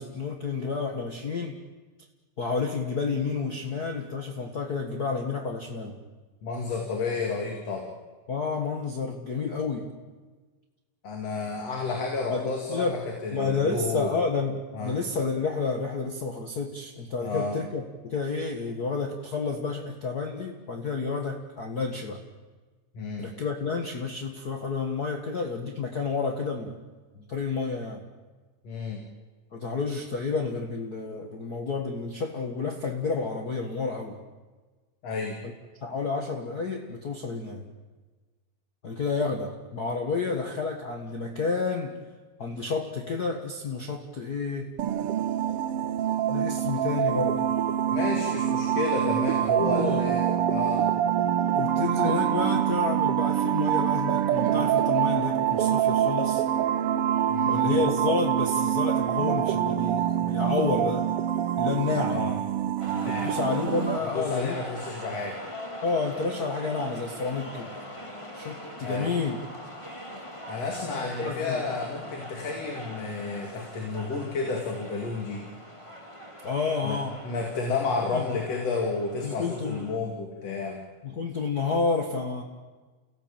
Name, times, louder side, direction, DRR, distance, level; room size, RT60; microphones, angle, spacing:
voice 1, 0.0-1.6 2.4-6.0 8.3-9.9 12.3-13.0 13.3-22.2 23.2-26.8 27.2-28.0 29.5-34.2 35.4-35.5 35.8-37.6 38.8-42.0 42.4-44.7 46.3-47.5 49.7-50.1 51.5-56.4 57.5-61.1 61.6-62.3 63.1-64.6 65.8-67.7 68.3-69.4 71.0-71.6 76.4-77.2 78.1-78.2 79.2-79.9 81.0-82.4, left 4 dB, 40° left, 3 dB, 1.8 m, -30 dB
voice 2, 6.4-7.9 11.0-14.1 14.7-15.0 17.2-17.6 23.0-23.3 28.6-29.0 35.0-35.4 47.9-50.9 57.3-57.7 62.0-62.4 62.9-63.4 64.1-65.4 68.8-69.1 70.5-75.4 76.8-77.0 77.3-80.8, left 4 dB, 60° left, 2 dB, 3.5 m, -31 dB
sound 1, 44.8-64.0, right 10 dB, 65° right, 1.6 m, -25 dB
sound 2, 62.8-80.0, equal, 10° left, 2.1 m, -41 dB
29.0 x 17.0 x 8.8 m, 1.3 s
omnidirectional pair, 3.3 m